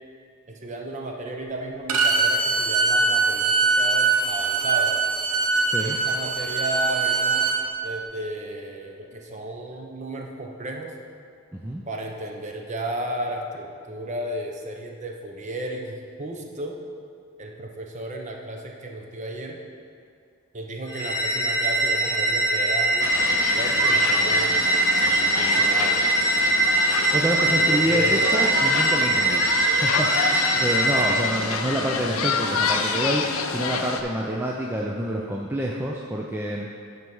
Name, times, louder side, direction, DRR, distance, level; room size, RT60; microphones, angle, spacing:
voice 1, 0.5-5.0 5.8-7.5 7.8-10.9 11.9-16.8 17.4-19.6 20.5-24.5 25.4-26.0 27.7-28.2, right 1 dB, 35° right, 1 dB, 0.8 m, -34 dB
Bowed string instrument, 1.9-7.6, right 4 dB, 80° right, 0.9 m, -22 dB
voice 2, 11.5-11.8 27.1-36.7, right 1 dB, 10° right, -3 dB, 0.4 m, -27 dB
sound 1, 20.9-31.4, right 2 dB, 15° left, 1.0 m, -22 dB
sound 2, 23.0-34.0, left 5 dB, 75° left, 0.6 m, -28 dB
9.3 x 4.6 x 5.4 m, 2.3 s
head